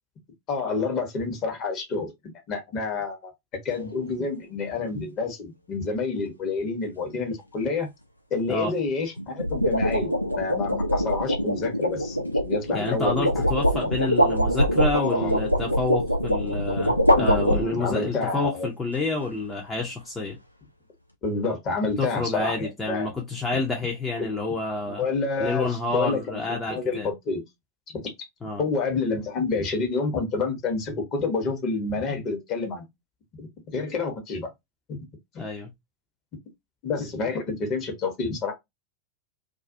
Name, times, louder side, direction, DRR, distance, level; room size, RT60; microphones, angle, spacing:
voice 1, 0.5-2.1 2.5-3.3 3.6-7.9 8.3-12.2 12.5-13.5 14.9-15.3 17.2-18.7 21.2-23.2 24.2-24.3 24.9-26.2 26.5-27.4 27.9-28.1 28.6-32.8 33.4-34.5 34.9-35.1 35.3-35.4 36.8-38.5, left 4 dB, 35° left, 1.0 m, -28 dB
sound 1, 3.7-4.0 9.2-18.1, equal, 90° left, 0.4 m, -24 dB
voice 2, 12.7-20.4 22.0-25.0 25.4-27.1 28.4-28.6 35.4-35.7, left 3 dB, 15° left, 0.6 m, -29 dB
2.4 x 2.3 x 2.5 m
figure-of-eight pair, 90°, 0 cm